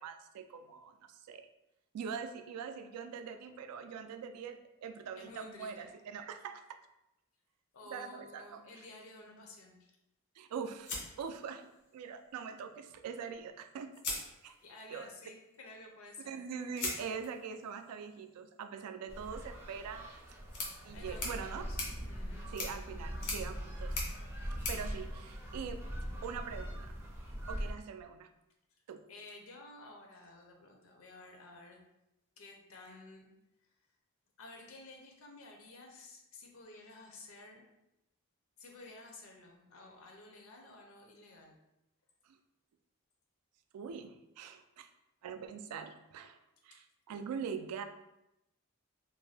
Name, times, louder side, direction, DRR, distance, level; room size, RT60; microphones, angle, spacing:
voice 1, 0.0-1.4 1.9-6.8 7.9-8.6 10.4-13.9 14.4-14.6 14.9-15.1 16.3-20.1 20.8-21.7 22.0-22.1 22.5-23.9 24.7-25.8 26.2-27.0 27.5-28.3 28.9-29.0 43.7-44.9 45.2-46.4 46.6-47.8, right 6 dB, 90° right, 11 dB, 0.3 m, -43 dB
voice 2, 5.2-5.9 7.7-9.9 14.6-16.4 20.9-21.8 22.1-22.5 29.1-31.8 32.4-33.3 34.4-37.6 38.6-41.6 46.7-46.8, left 2 dB, 65° left, 2 dB, 0.5 m, -53 dB
sound 1, 10.8-12.0 13.3-13.4 13.9-14.9 16.7-25.9, left 2 dB, 90° left, 0.8 m, -43 dB
sound 2, 19.1-27.7, equal, 10° right, 0.4 m, -42 dB
sound 3, 20.8-27.2, equal, 45° right, 0.7 m, -54 dB
2.6 x 2.1 x 3.2 m, 0.89 s
head